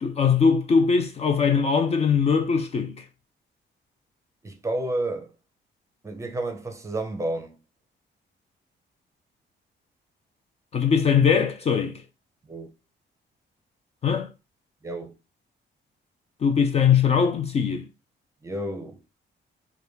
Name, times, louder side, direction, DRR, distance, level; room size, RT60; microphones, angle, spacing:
voice 1, 0.0-3.0 10.7-11.9 14.0-14.3 16.4-17.9, left 6 dB, 35° left, 0.4 m, -21 dB
voice 2, 4.4-5.3 6.0-7.6 12.4-12.7 14.8-15.1 18.4-19.0, right 1 dB, 15° right, 0.6 m, -31 dB
4.7 x 2.3 x 3.4 m
cardioid pair, 165°, 20 cm